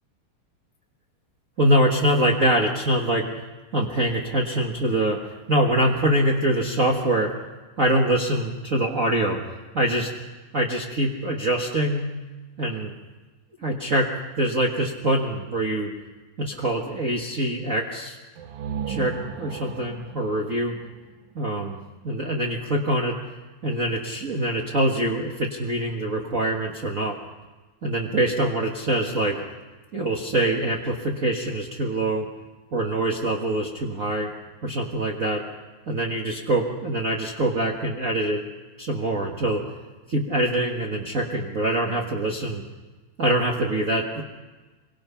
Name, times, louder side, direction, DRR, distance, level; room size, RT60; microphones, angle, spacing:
voice 1, 1.6-3.3 3.7-7.3 7.8-9.4 9.7-10.1 10.5-12.0 12.6-12.9 13.6-14.1 14.4-15.9 16.4-18.2 18.9-20.7 21.3-21.8 22.0-23.2 23.6-27.2 27.8-29.4 29.9-32.3 32.7-34.3 34.6-35.4 35.9-38.4 38.8-39.6 40.1-42.6 43.2-44.2, right 1 dB, 45° right, 0 dB, 1.0 m, -24 dB
sound 1, 18.4-22.1, right 8 dB, 70° right, 2.1 m, -36 dB
26.0 x 24.0 x 5.8 m, 1.3 s
omnidirectional pair, 4.1 m